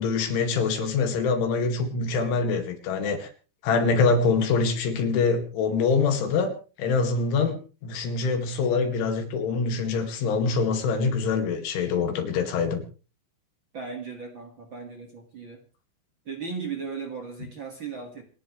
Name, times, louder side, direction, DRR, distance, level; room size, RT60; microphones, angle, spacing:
voice 1, 0.0-3.3 3.6-7.6 7.8-12.8, left 4 dB, 70° left, 6 dB, 4.5 m, -24 dB
voice 2, 13.7-15.6 16.2-18.2, right 5 dB, 55° right, 3 dB, 1.3 m, -36 dB
27.0 x 11.5 x 3.3 m, 0.35 s
omnidirectional pair, 5.7 m